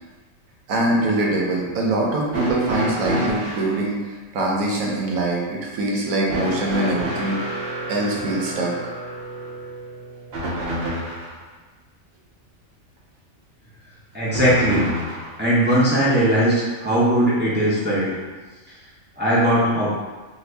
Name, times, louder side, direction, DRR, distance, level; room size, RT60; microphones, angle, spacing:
voice 1, 0.7-4.0 4.3-7.4 7.9-8.7, right 2 dB, 90° right, -2 dB, 1.1 m, -23 dB
sound 1, 2.3-3.7 6.3-11.4 14.3-15.4 16.6-16.7 17.8-17.9, right 1 dB, 55° right, 0.8 m, -28 dB
voice 2, 14.1-14.8 15.4-18.2 19.2-19.9, right 1 dB, 15° right, -9 dB, 0.4 m, -19 dB
2.7 x 2.6 x 3.3 m, 1.3 s
omnidirectional pair, 1.4 m